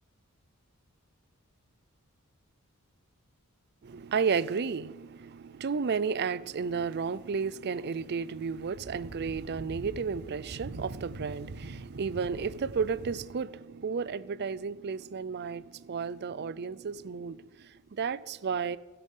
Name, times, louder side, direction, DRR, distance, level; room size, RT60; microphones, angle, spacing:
voice 1, 3.8-18.8, right 5 dB, 50° right, 0.5 m, -33 dB
sound 1, 6.6-13.2, right 2 dB, 85° right, 1.0 m, -45 dB
16.0 x 10.5 x 5.5 m
head